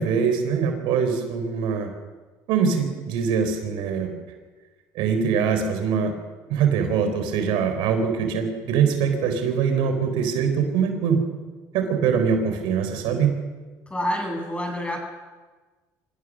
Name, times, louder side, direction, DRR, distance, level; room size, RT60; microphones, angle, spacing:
voice 1, 0.0-1.9 2.5-4.1 4.9-6.1 6.5-11.2 11.7-13.4, right 6 dB, 75° right, 6 dB, 3.8 m, -23 dB
voice 2, 13.9-15.0, equal, 15° left, 2 dB, 7.4 m, -27 dB
25.5 x 16.5 x 6.3 m, 1.3 s
supercardioid pair, 95°, 8 cm